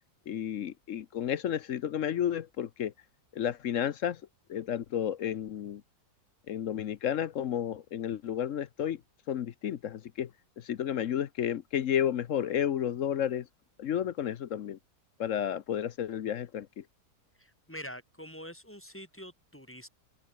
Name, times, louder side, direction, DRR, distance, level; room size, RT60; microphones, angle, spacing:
voice 1, 0.3-2.9 3.3-4.2 4.5-5.8 6.5-9.0 9.3-10.3 10.6-13.5 13.8-14.8 15.2-16.8, left 9 dB, 60° left, 1.0 m, -32 dB
voice 2, 17.4-19.9, equal, 5° left, 3.0 m, -45 dB
open air
omnidirectional pair, 1.7 m